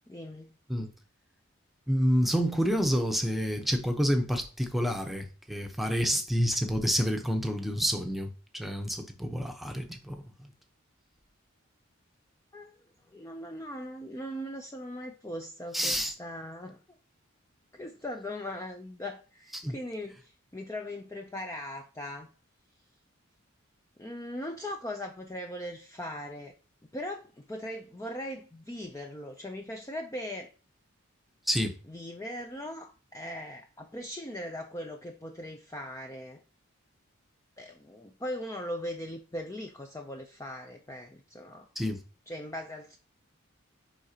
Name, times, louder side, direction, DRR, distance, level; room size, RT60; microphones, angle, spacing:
voice 1, 0.1-0.6 12.5-12.8 13.1-16.8 17.7-22.3 24.0-26.5 26.8-30.5 31.9-36.4 37.6-41.7 42.3-43.0, left 1 dB, 15° left, 0.5 m, -39 dB
voice 2, 1.9-10.2 15.7-16.1 19.5-19.7 31.5-31.8 41.8-42.0, equal, ahead, 0.8 m, -28 dB
10.0 x 3.8 x 2.9 m
head